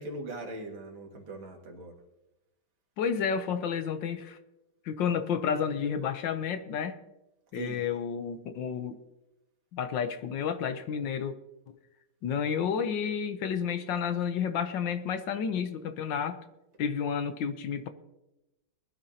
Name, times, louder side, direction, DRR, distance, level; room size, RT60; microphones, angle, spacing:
voice 1, 0.0-1.9 7.5-7.8, right 2 dB, 70° right, 1 dB, 2.8 m, -40 dB
voice 2, 3.0-4.4 4.8-7.0 7.5-9.0 9.7-11.4 12.2-16.4 16.8-17.9, left 7 dB, 70° left, 10 dB, 1.4 m, -31 dB
20.5 x 12.0 x 2.8 m, 0.95 s
omnidirectional pair, 2.2 m